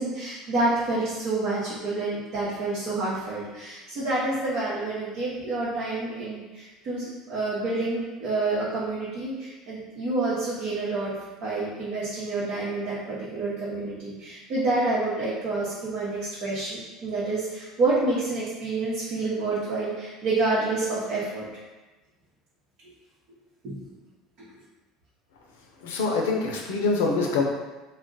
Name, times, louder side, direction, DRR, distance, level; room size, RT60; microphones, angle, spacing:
voice 1, 0.0-11.1 11.4-21.5 23.6-23.8, right 2 dB, 55° right, -9 dB, 0.8 m, -28 dB
voice 2, 25.8-27.4, left 4 dB, 80° left, 0 dB, 0.5 m, -25 dB
2.3 x 2.0 x 3.8 m, 1.2 s
hypercardioid pair, 75°, 0 cm